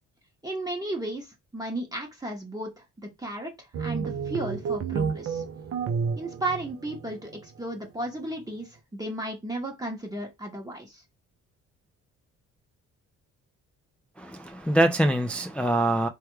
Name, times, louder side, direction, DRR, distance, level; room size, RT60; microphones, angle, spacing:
voice 1, 0.4-5.4 6.2-11.0, right 1 dB, 10° right, 0.9 m, -34 dB
sound 1, 3.7-7.4, right 6 dB, 50° right, 0.5 m, -31 dB
voice 2, 14.2-16.1, right 1 dB, 5° left, 0.3 m, -24 dB
3.3 x 2.3 x 3.1 m
cardioid pair, 90°, 30 cm